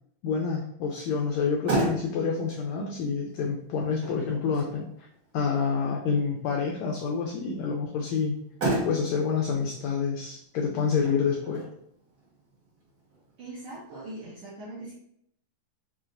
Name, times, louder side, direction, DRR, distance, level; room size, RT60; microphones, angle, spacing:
voice 1, 0.2-4.9 5.3-8.4 8.8-11.6, left 5 dB, 80° left, 0 dB, 1.6 m, -28 dB
Motor vehicle (road), 1.3-14.2, right 2 dB, 60° right, 0.9 m, -36 dB
voice 2, 13.4-14.9, right 2 dB, 80° right, -8 dB, 1.2 m, -41 dB
5.8 x 2.5 x 2.5 m, 0.71 s
omnidirectional pair, 3.7 m